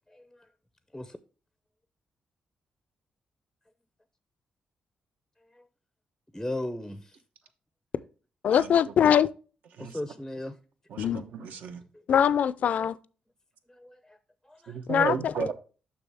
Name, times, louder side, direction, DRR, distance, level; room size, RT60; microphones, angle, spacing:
voice 1, 0.1-0.5 0.9-1.2 5.5-5.6 6.3-7.2 9.8-10.6 13.7-14.2 14.4-15.1, left 1 dB, 5° left, 0.5 m, -37 dB
voice 2, 8.4-9.3 11.0-11.2 12.1-13.0 14.9-15.3, left 8 dB, 60° left, 0.4 m, -22 dB
voice 3, 10.9-11.8 14.7-15.5, right 6 dB, 75° right, 0.9 m, -33 dB
6.9 x 6.0 x 3.4 m
cardioid pair, 115°, 3 cm